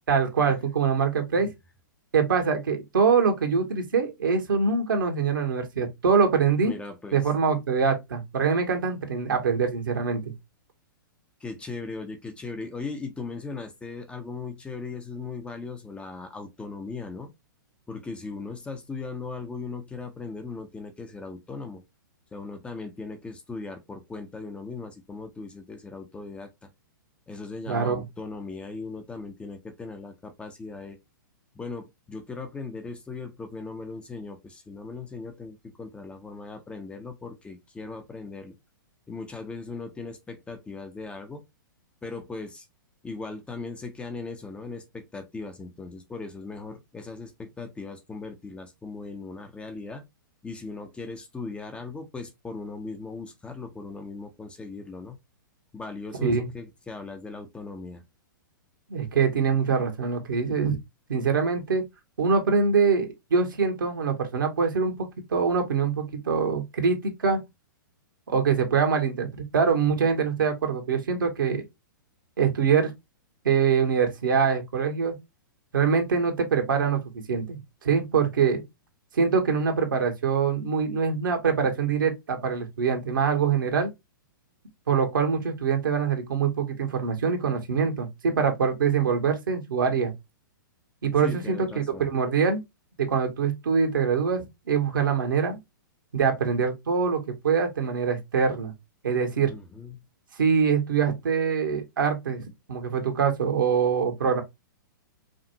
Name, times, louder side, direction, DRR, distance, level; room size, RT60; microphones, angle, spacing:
voice 1, 0.1-1.5 2.1-6.7 7.1-10.3 27.7-28.0 56.2-56.5 58.9-60.8 61.1-61.8 62.2-67.4 68.3-71.6 72.4-72.9 73.4-75.1 75.7-77.0 77.3-78.6 79.1-83.9 84.9-90.1 91.0-92.6 93.0-95.6 96.1-98.7 99.0-99.5 100.4-102.4 102.7-104.4, right 6 dB, 75° right, 1.4 m, -24 dB
voice 2, 6.6-7.2 11.4-17.3 17.9-21.8 22.3-26.7 27.3-31.0 31.5-38.6 39.1-41.4 42.0-42.7 43.0-50.0 50.4-55.2 55.7-58.0 91.2-92.1 99.4-100.0, left 4 dB, 10° left, 0.6 m, -38 dB
5.0 x 2.5 x 2.8 m
hypercardioid pair, 115°, 11 cm